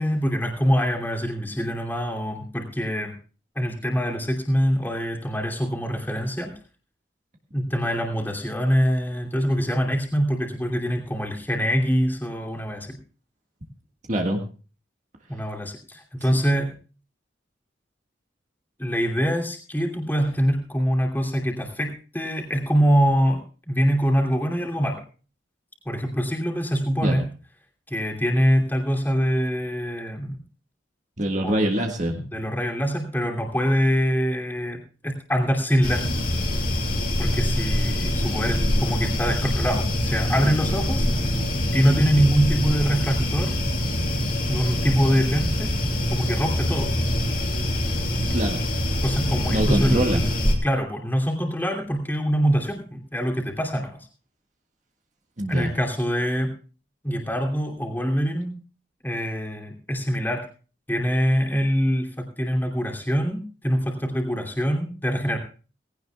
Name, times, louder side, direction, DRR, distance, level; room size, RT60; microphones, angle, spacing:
voice 1, 0.0-3.2 3.5-6.5 7.5-13.0 15.3-16.7 18.8-23.4 23.7-25.0 25.8-27.3 27.9-30.4 31.4-31.6 32.3-36.3 37.2-41.1 41.7-43.6 44.5-45.7 46.1-46.9 49.0-54.0 55.5-56.5 57.0-58.5 59.0-60.4 60.9-65.4, equal, 10° left, 1 dB, 2.8 m, -24 dB
voice 2, 14.1-14.4 16.2-16.4 27.0-27.2 31.2-32.3 48.2-48.6 49.5-50.2 55.4-55.8, right 1 dB, 40° right, 2 dB, 1.7 m, -24 dB
sound 1, 35.8-50.6, left 1 dB, 50° left, 2.9 m, -24 dB
18.5 x 16.5 x 2.3 m, 0.36 s
head